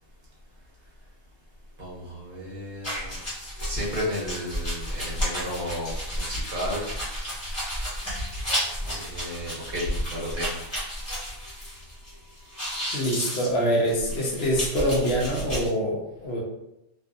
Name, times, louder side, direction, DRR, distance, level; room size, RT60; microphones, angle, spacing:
voice 1, 1.8-3.2 3.6-6.9 8.9-10.6, equal, 55° right, -6 dB, 1.0 m, -32 dB
sound 1, 2.8-12.1 12.4-15.7, equal, 25° left, 1.1 m, -33 dB
voice 2, 12.9-16.4, equal, 65° left, -2 dB, 0.8 m, -25 dB
2.5 x 2.5 x 2.3 m, 0.88 s
omnidirectional pair, 1.2 m